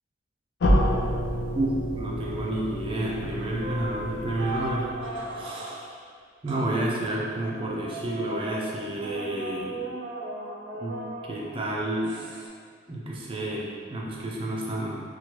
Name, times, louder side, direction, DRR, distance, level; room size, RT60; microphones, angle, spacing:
sound 1, 0.6-5.4, equal, 65° left, 0.4 m, -28 dB
voice 1, 1.5-4.9 5.3-6.0 6.4-9.8 10.8-12.1 12.9-15.0, right 1 dB, 30° right, -3 dB, 0.4 m, -30 dB
sound 2, 3.0-3.3 3.6-5.8 6.5-6.7 7.4-11.6 12.0-12.5, right 1 dB, 85° right, 0.5 m, -37 dB
2.9 x 2.4 x 3.0 m, 2.1 s
head